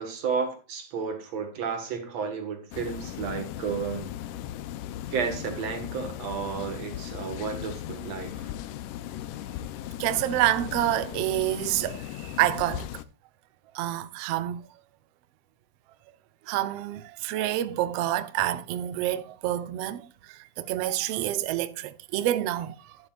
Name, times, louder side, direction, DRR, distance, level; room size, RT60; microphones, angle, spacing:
voice 1, 0.0-4.1 5.1-8.5, right 6 dB, 55° right, 2.6 m, -32 dB
sound 1, 2.7-13.0, left 12 dB, 80° left, 2.1 m, -37 dB
voice 2, 10.0-12.9 13.7-14.7 16.5-23.0, right 13 dB, 90° right, 1.3 m, -28 dB
11.5 x 11.0 x 2.5 m
omnidirectional pair, 4.0 m